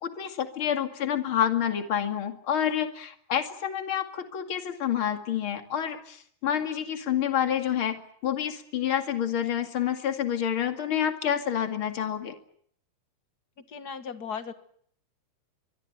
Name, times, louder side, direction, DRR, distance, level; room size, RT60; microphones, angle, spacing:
voice 1, 0.0-12.3, left 9 dB, 40° left, 6 dB, 2.7 m, -28 dB
voice 2, 13.6-14.5, left 6 dB, 60° left, 10 dB, 1.0 m, -37 dB
24.0 x 22.5 x 9.2 m, 0.64 s
omnidirectional pair, 4.0 m